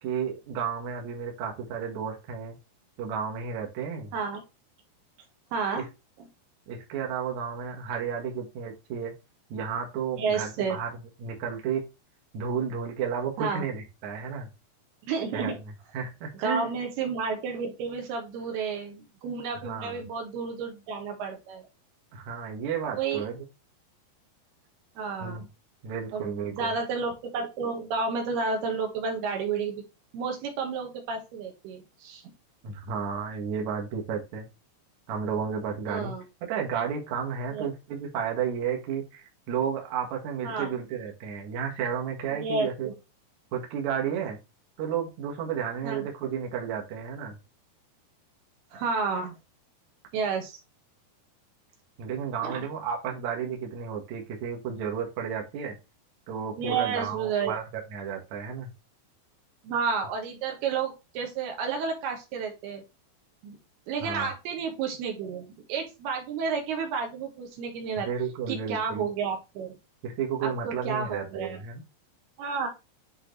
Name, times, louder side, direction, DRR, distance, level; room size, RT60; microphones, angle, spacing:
voice 1, 0.0-2.6 3.0-4.1 5.7-5.9 6.7-9.1 9.5-10.9 11.2-11.8 12.3-14.5 15.3-15.5 15.9-16.7 19.6-20.0 22.1-23.4 25.2-25.5 25.8-26.7 32.6-34.5 35.1-36.1 36.5-42.9 43.5-44.4 44.8-47.4 52.0-55.8 56.3-58.7 64.0-64.3 68.0-69.1 70.0-71.8, right 7 dB, 55° right, 1 dB, 2.2 m, -32 dB
voice 2, 4.1-4.4 5.5-5.8 10.2-10.8 13.4-13.7 15.0-15.6 16.3-21.7 22.9-23.2 25.0-25.5 26.1-29.8 30.1-32.2 35.9-36.2 37.5-37.7 40.4-40.7 42.3-42.9 45.8-46.0 48.7-49.4 50.1-50.6 52.4-52.6 56.6-57.5 59.6-62.8 63.4-63.6 63.9-68.1 68.5-69.8 70.4-71.6 72.4-72.7, right 5 dB, 75° right, 3 dB, 3.3 m, -31 dB
10.5 x 3.9 x 3.2 m, 0.27 s
omnidirectional pair, 4.8 m